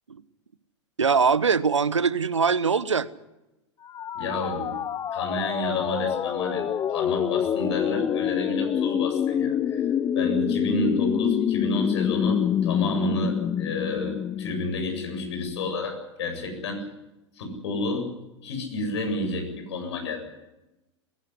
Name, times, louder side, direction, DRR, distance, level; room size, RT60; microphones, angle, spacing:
voice 1, 1.0-3.1, right 5 dB, 90° right, 17 dB, 1.1 m, -22 dB
sound 1, 3.9-15.7, left 9 dB, 25° left, 0.8 m, -27 dB
voice 2, 4.1-4.8 5.1-9.9 10.1-16.9 17.3-18.2 18.4-20.3, left 1 dB, 70° left, 4 dB, 7.9 m, -30 dB
21.5 x 17.5 x 9.9 m, 0.97 s
hypercardioid pair, 95°, 15 cm